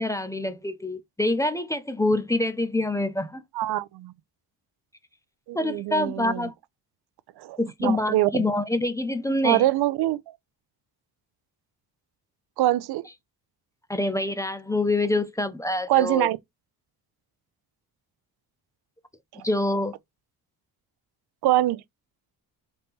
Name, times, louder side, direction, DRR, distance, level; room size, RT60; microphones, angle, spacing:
voice 1, 0.0-3.4 5.5-6.5 7.6-9.6 13.9-16.3 19.4-20.0, left 2 dB, 10° left, 0.5 m, -26 dB
voice 2, 3.5-4.1 5.5-6.5 7.4-8.5 9.4-10.3 12.6-13.1 15.9-16.4 21.4-21.8, right 15 dB, 75° right, 0.5 m, -24 dB
4.1 x 2.7 x 3.6 m
cardioid pair, 110°, 39 cm